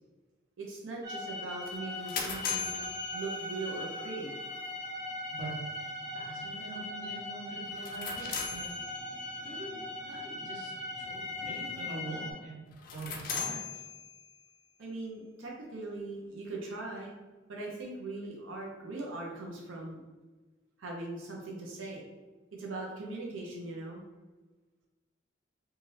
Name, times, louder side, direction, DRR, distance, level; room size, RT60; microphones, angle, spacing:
voice 1, 0.6-2.7 3.1-4.3 14.8-17.1 17.5-20.0 20.8-22.0 22.6-24.0, right 2 dB, 85° right, -2 dB, 0.6 m, -40 dB
sound 1, 1.0-12.3, left 1 dB, 15° right, 0.5 m, -40 dB
sound 2, 1.7-3.9 7.7-9.4 12.7-14.5, left 6 dB, 45° left, 0.4 m, -39 dB
voice 2, 6.1-8.7 9.4-10.7 11.0-13.8, right 2 dB, 40° right, -5 dB, 0.8 m, -44 dB
2.6 x 2.3 x 3.2 m, 1.2 s
head